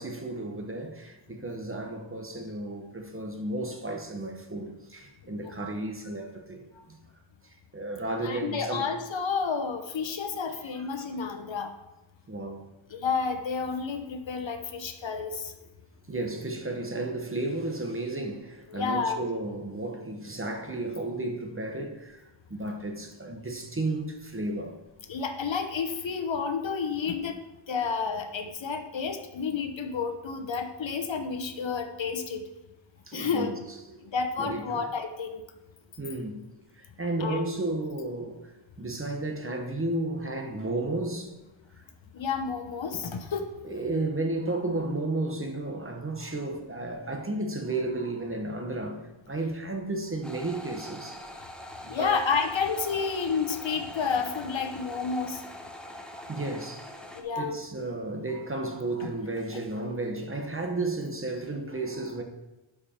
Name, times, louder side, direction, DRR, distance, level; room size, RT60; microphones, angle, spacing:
voice 1, 0.0-7.0 7.7-8.9 10.7-11.1 12.3-12.7 16.1-22.2 22.5-24.8 33.1-33.6 33.9-34.0 34.4-34.9 36.0-36.4 36.8-38.5 38.8-41.3 41.8-41.9 43.6-51.2 51.8-52.2 55.8-56.9 57.4-62.2, right 2 dB, 25° right, 1.0 m, -33 dB
voice 2, 8.2-11.7 12.9-15.5 18.7-19.2 25.1-27.4 27.7-32.4 33.1-33.5 34.0-35.4 37.2-37.4 42.1-43.5 51.9-55.4 57.1-57.6 59.0-59.1, left 5 dB, 65° left, 1.0 m, -30 dB
sound 1, 50.2-57.2, left 1 dB, ahead, 0.8 m, -43 dB
12.0 x 4.9 x 4.3 m
wide cardioid pair, 135°, 49 cm